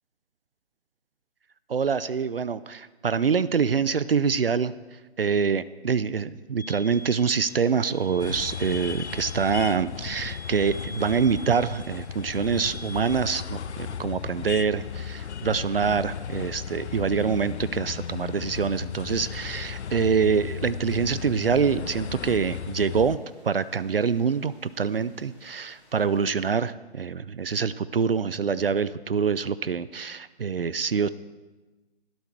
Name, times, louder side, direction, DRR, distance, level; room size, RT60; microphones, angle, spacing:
voice 1, 1.7-23.2 23.4-31.1, right 6 dB, 60° right, 16 dB, 0.6 m, -25 dB
sound 1, 6.6-13.2, left 1 dB, 40° left, 0.5 m, -44 dB
sound 2, 6.9-26.5, equal, ahead, 4.1 m, -59 dB
sound 3, 8.2-23.2, left 8 dB, 85° left, 0.6 m, -35 dB
18.0 x 12.5 x 4.6 m, 1.2 s
hypercardioid pair, 165°, 33 cm